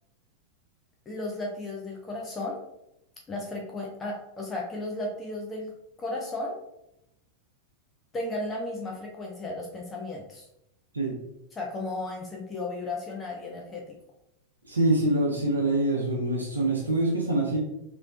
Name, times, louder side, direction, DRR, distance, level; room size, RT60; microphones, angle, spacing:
voice 1, 1.1-2.6 3.3-5.7 6.0-6.6 8.1-10.5 11.5-13.9, left 2 dB, 20° left, -1 dB, 0.6 m, -34 dB
voice 2, 14.7-17.6, right 2 dB, 80° right, -2 dB, 0.6 m, -25 dB
3.2 x 3.0 x 2.5 m, 0.82 s
figure-of-eight pair, 90°, 0 cm